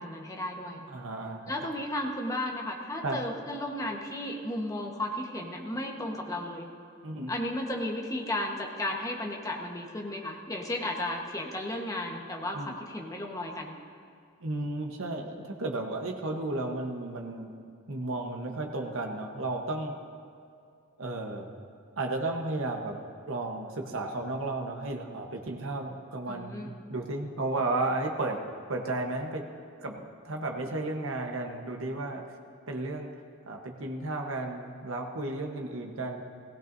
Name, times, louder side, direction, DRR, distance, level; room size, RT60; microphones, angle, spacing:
voice 1, 0.0-0.8 1.5-6.7 7.3-13.8 26.3-26.7, left 1 dB, 15° left, 0 dB, 1.2 m, -34 dB
voice 2, 0.9-1.5 3.0-3.2 7.0-7.3 12.5-12.7 14.4-17.5 17.9-19.9 21.0-21.6 22.0-23.0 23.3-28.4 28.7-29.5 29.8-32.3 32.7-33.1 33.5-36.2, right 2 dB, 65° right, 3 dB, 1.1 m, -33 dB
17.5 x 16.0 x 2.7 m, 2.4 s
head